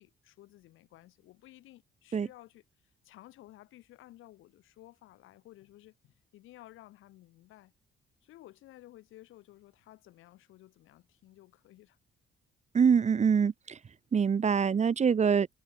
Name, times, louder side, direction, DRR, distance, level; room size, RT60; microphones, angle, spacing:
voice 1, 0.0-2.6 3.0-7.7 8.2-12.0, left 15 dB, 90° left, 7.1 m, -55 dB
voice 2, 12.7-13.8 14.1-15.5, right 6 dB, 35° right, 0.8 m, -24 dB
cardioid pair, 90°, 20 cm